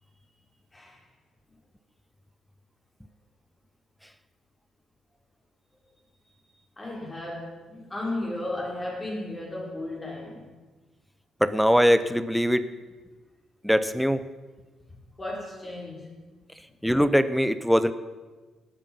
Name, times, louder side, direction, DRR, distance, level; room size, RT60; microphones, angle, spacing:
voice 1, 0.7-1.0 6.8-10.5 14.9-16.1 16.6-16.7, left 1 dB, 20° left, 4.8 m, -35 dB
voice 2, 11.4-12.7 13.6-14.2 16.8-17.9, equal, ahead, 0.7 m, -21 dB
17.5 x 8.9 x 5.4 m
cardioid pair, 90°, 0 cm